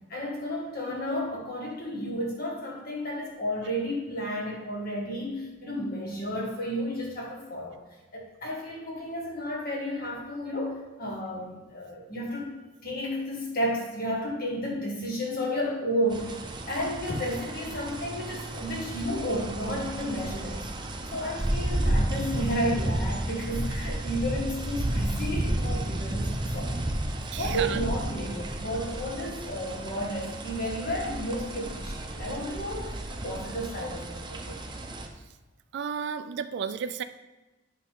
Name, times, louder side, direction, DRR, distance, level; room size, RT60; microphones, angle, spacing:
voice 1, 0.1-7.8 8.1-16.4 16.7-20.6 21.1-26.7 27.3-34.6, equal, 50° left, -2 dB, 1.8 m, -32 dB
sound 1, 16.1-35.1, right 1 dB, 25° right, 0.6 m, -32 dB
voice 2, 27.3-27.8 35.7-37.0, right 7 dB, 60° right, 10 dB, 0.3 m, -32 dB
8.4 x 5.4 x 3.6 m, 1.1 s
head